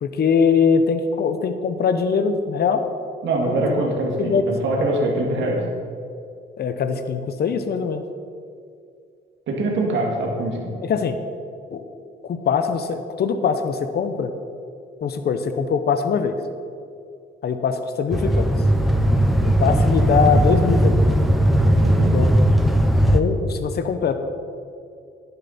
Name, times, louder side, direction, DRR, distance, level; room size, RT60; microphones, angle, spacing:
voice 1, 0.0-2.8 3.5-3.6 4.2-4.5 6.6-8.0 10.8-11.2 11.7-11.8 12.2-14.3 15.0-16.3 17.4-18.5 19.6-20.9 22.1-22.4 23.1-24.1, left 6 dB, 55° left, 8 dB, 0.9 m, -22 dB
voice 2, 3.2-5.6 9.5-10.8 20.3-20.6 21.7-22.2, right 2 dB, 70° right, -1 dB, 2.4 m, -23 dB
sound 1, 18.1-23.2, equal, ahead, 0.9 m, -17 dB
10.5 x 10.0 x 4.3 m, 2.4 s
cardioid pair, 90°, 20 cm